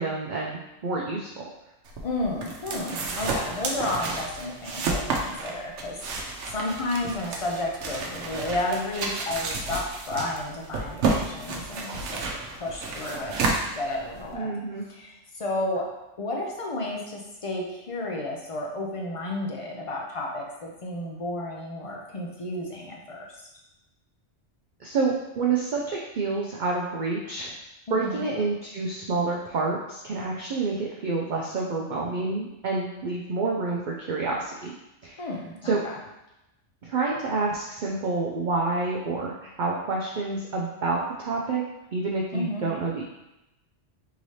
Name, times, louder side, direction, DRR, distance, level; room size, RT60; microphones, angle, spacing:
voice 1, 0.0-1.3 14.3-14.8 24.8-27.5 27.9-34.7 35.0-35.3 35.6-35.8 36.8-41.6 41.9-43.0, right 3 dB, 60° right, -3 dB, 0.5 m, -28 dB
sound 1, 1.9-14.3, right 3 dB, 80° right, 0.9 m, -31 dB
voice 2, 2.0-12.2 12.5-14.5 14.9-15.9 16.2-23.3 27.9-28.3 35.2-35.7 42.3-42.7, left 2 dB, 50° left, -2 dB, 0.4 m, -32 dB
3.7 x 2.8 x 3.1 m, 0.92 s
omnidirectional pair, 1.2 m